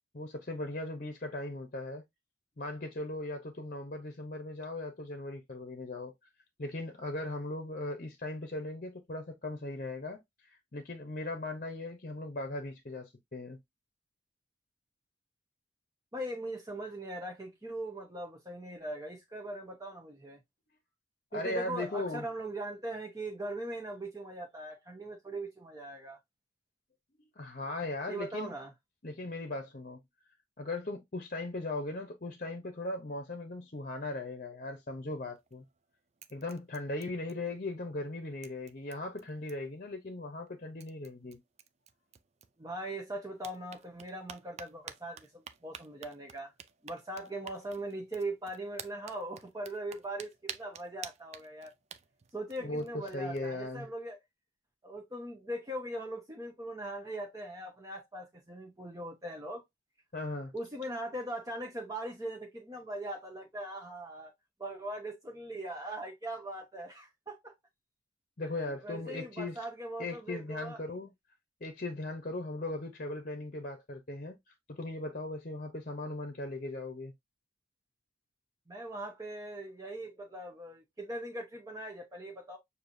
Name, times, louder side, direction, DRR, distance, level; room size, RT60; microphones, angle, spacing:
voice 1, 0.1-2.0 2.6-6.1 6.6-13.6 21.3-22.2 27.4-28.5 29.0-30.0 30.6-35.6 36.3-41.4 52.6-53.9 60.1-60.5 68.4-69.6 70.0-71.1 71.6-74.3 74.7-77.1, left 2 dB, 45° left, 0.8 m, -38 dB
voice 2, 16.1-20.4 21.3-26.2 28.1-28.7 42.6-46.5 46.8-51.7 52.3-54.2 54.8-59.6 60.5-64.3 64.6-67.6 68.7-70.8 78.7-82.6, right 1 dB, 20° right, 0.9 m, -40 dB
sound 1, 35.3-35.8 36.2-37.7 38.0-38.1 38.4-39.8 40.5-40.6 40.8-42.9 43.3-53.5, right 8 dB, 35° right, 0.4 m, -50 dB
6.6 x 2.8 x 2.6 m
head